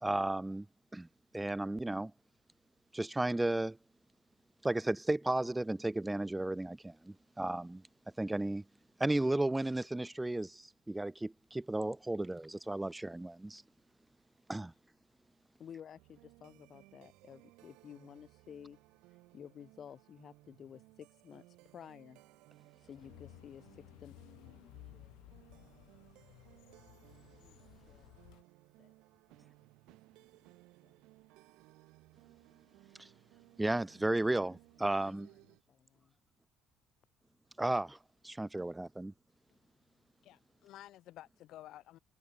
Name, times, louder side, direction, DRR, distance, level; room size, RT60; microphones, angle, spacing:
voice 1, 0.0-0.7 0.9-1.1 1.3-2.1 2.9-3.8 4.6-7.8 8.2-8.6 9.0-13.6 14.5-14.7 33.0-33.1 33.6-35.3 37.6-38.0 38.2-39.1, right 2 dB, 5° right, 0.5 m, -34 dB
voice 2, 15.6-18.8 19.1-22.2 22.8-25.1 25.5-25.9 27.3-28.1 28.8-28.9 29.3-29.5 29.9-31.0 33.0-33.1 34.3-34.4 35.2-36.2, left 8 dB, 35° left, 2.4 m, -54 dB
sound 1, 15.9-35.6, right 20 dB, 80° right, 1.6 m, -62 dB
sound 2, 23.0-28.4, left 20 dB, 80° left, 0.9 m, -57 dB
voice 3, 40.2-42.0, left 14 dB, 60° left, 4.2 m, -52 dB
cardioid pair, 150°, 0 cm